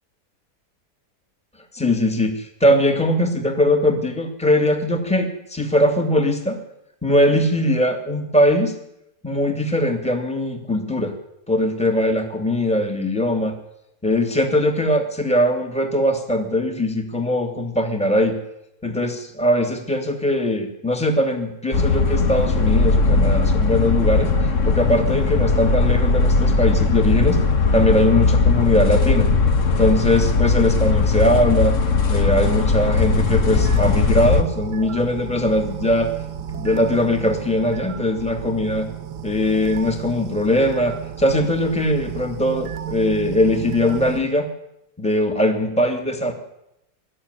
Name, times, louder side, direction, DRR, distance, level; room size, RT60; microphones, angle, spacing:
voice 1, 1.7-6.6 7.0-8.7 9.2-11.1 11.5-13.6 14.0-18.4 18.8-29.3 29.8-31.8 32.1-36.1 36.5-38.9 39.2-44.5 45.0-46.3, left 1 dB, 5° left, 3 dB, 2.8 m, -20 dB
sound 1, 21.7-34.4, left 4 dB, 50° left, 1.6 m, -18 dB
Computer Idle, 32.2-44.3, right 8 dB, 90° right, 1.6 m, -33 dB
24.0 x 13.5 x 10.0 m, 0.83 s
omnidirectional pair, 1.8 m